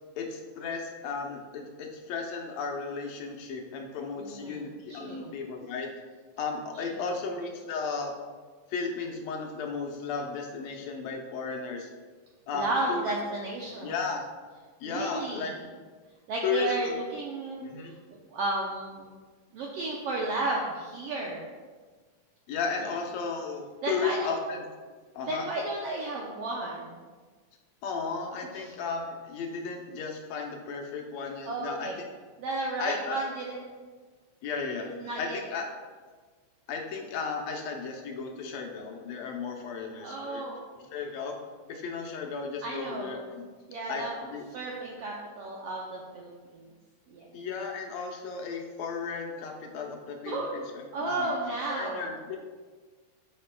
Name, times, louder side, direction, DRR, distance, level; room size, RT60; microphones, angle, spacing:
voice 1, 0.2-5.9 6.4-8.1 8.7-11.9 12.5-13.1 13.8-14.2 14.8-15.5 16.4-17.0 17.6-17.9 22.5-24.6 25.1-25.5 27.8-31.9 32.8-33.2 34.4-35.6 36.7-40.4 40.9-41.4 41.7-43.5 43.9-44.0 44.3-44.4 47.3-50.6 51.0-51.3 51.7-52.4, left 5 dB, 75° left, 2 dB, 1.7 m, -34 dB
voice 2, 4.2-4.6 4.9-5.3 6.7-7.1 12.5-14.0 14.8-15.6 16.3-19.2 19.5-21.4 22.8-22.9 23.8-24.3 25.3-27.0 28.5-28.7 31.4-31.9 32.4-33.6 34.8-35.4 40.0-40.6 42.6-43.3 43.7-44.2 44.5-46.7 47.1-47.3 50.2-50.6 50.9-52.1, right 2 dB, 90° right, -2 dB, 1.3 m, -33 dB
12.0 x 5.1 x 2.2 m, 1.4 s
omnidirectional pair, 3.6 m